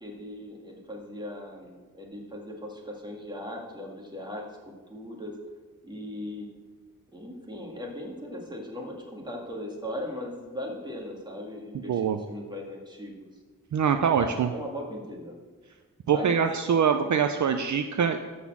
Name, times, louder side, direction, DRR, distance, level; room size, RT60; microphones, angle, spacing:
voice 1, 0.0-5.3 5.8-6.5 7.1-13.1 14.0-15.4 16.1-16.5, left 1 dB, 10° right, -1 dB, 1.9 m, -38 dB
voice 2, 11.9-12.2 13.7-14.5 16.1-18.2, right 7 dB, 55° right, 7 dB, 0.5 m, -24 dB
12.5 x 4.3 x 7.2 m, 1.4 s
wide cardioid pair, 145°, 35 cm